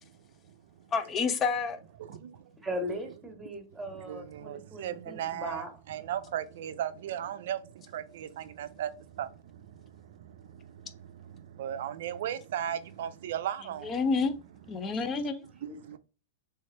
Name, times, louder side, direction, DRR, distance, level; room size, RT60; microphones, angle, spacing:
voice 1, 0.0-0.9 2.0-2.6 3.9-14.0 14.8-15.0 15.8-16.0, right 10 dB, 65° right, 0.5 m, -37 dB
voice 2, 0.9-1.8 13.8-14.4 14.7-15.5, left 4 dB, 25° left, 0.7 m, -29 dB
voice 3, 2.6-5.7 15.6-15.8, equal, 10° right, 1.4 m, -38 dB
3.4 x 3.2 x 4.3 m
hypercardioid pair, 110°, 0 cm